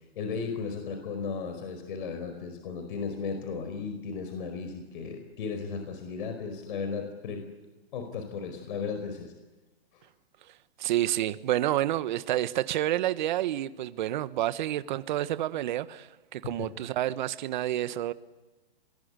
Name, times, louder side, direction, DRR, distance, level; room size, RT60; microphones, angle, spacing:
voice 1, 0.1-7.5 7.9-9.3 16.6-16.7, left 5 dB, 55° left, 6 dB, 4.8 m, -35 dB
voice 2, 10.8-18.1, right 13 dB, 50° right, 14 dB, 1.3 m, -29 dB
27.0 x 21.0 x 8.2 m, 1.1 s
hypercardioid pair, 145°, 31 cm